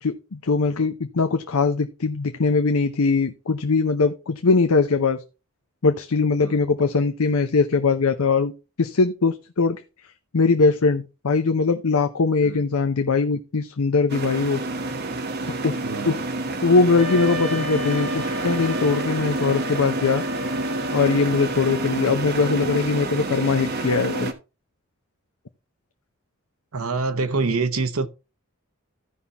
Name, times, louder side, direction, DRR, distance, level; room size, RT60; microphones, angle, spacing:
voice 1, 0.0-5.2 5.8-8.5 8.8-9.8 10.3-14.6 15.6-15.8 16.1-16.2 16.6-20.2 20.9-24.3, left 4 dB, 80° left, 0.7 m, -21 dB
sound 1, 14.1-24.3, right 2 dB, 45° right, 1.1 m, -28 dB
voice 2, 15.8-16.2 26.7-28.1, right 3 dB, 75° right, 0.9 m, -25 dB
Wind instrument woodwind instrument, 17.0-21.9, left 3 dB, ahead, 3.2 m, -34 dB
15.5 x 5.6 x 2.9 m
head